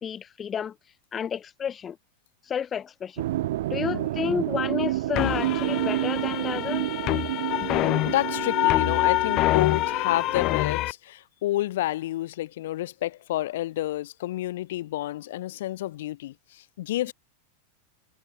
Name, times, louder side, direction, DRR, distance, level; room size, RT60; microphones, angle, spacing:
voice 1, 0.0-0.7 1.1-2.0 2.5-3.3 3.7-6.9, left 8 dB, 25° left, 1.0 m, -31 dB
sound 1, 3.2-10.7, right 15 dB, 75° right, 7.3 m, -30 dB
sound 2, 5.2-10.9, left 18 dB, 40° left, 2.7 m, -26 dB
voice 2, 8.1-17.1, left 15 dB, 75° left, 5.3 m, -30 dB
supercardioid pair, 130°, 0 cm